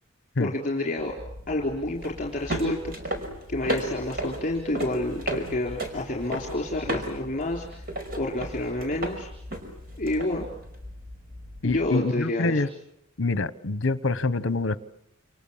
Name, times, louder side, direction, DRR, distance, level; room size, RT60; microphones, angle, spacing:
voice 1, 0.4-1.1 1.5-3.2 3.5-7.8 8.2-9.3 10.0-10.5 11.6-12.7, left 1 dB, 35° left, -1 dB, 4.0 m, -29 dB
sound 1, 1.0-11.9, right 1 dB, 45° right, 5.3 m, -35 dB
voice 2, 11.6-12.7 13.2-14.8, left 3 dB, 60° left, 15 dB, 1.0 m, -25 dB
28.5 x 28.0 x 7.3 m, 0.76 s
head